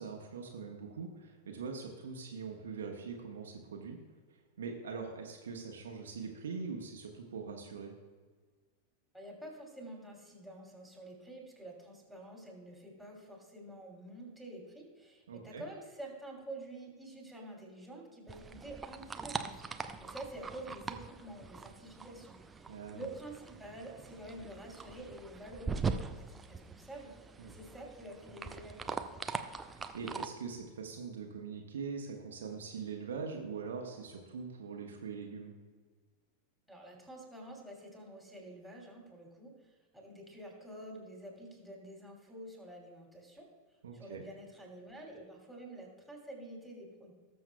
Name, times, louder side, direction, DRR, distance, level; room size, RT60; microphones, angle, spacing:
voice 1, 0.0-4.0 4.6-7.9 15.3-15.6 22.7-23.1 27.4-27.5 29.9-35.5 43.8-44.3, right 5 dB, 65° right, 1 dB, 1.1 m, -42 dB
voice 2, 9.1-29.2 36.7-43.5 43.9-47.1, right 1 dB, ahead, -2 dB, 2.9 m, -48 dB
sound 1, 18.3-30.3, right 4 dB, 15° right, 0.5 m, -42 dB
19.5 x 7.0 x 2.2 m, 1.5 s
figure-of-eight pair, 90°, 0 cm